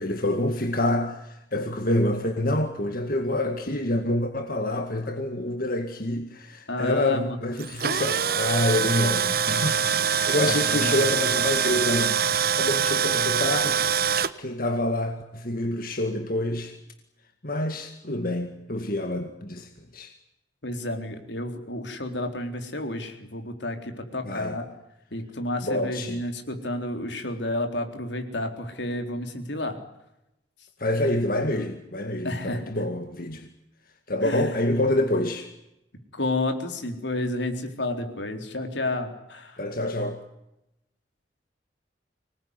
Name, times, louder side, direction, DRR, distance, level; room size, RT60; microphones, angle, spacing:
voice 1, 0.0-16.8 17.4-20.1 24.2-24.6 25.6-26.2 30.8-33.5 34.1-35.5 39.6-40.2, left 1 dB, 50° left, 6 dB, 2.1 m, -27 dB
voice 2, 6.7-7.4 10.2-11.1 20.6-24.6 25.1-29.8 32.2-32.8 34.2-34.7 36.1-39.6, left 1 dB, 80° left, 6 dB, 4.1 m, -31 dB
Tools, 7.6-14.3, right 7 dB, 55° right, 1.1 m, -24 dB
25.5 x 20.0 x 9.8 m, 0.87 s
head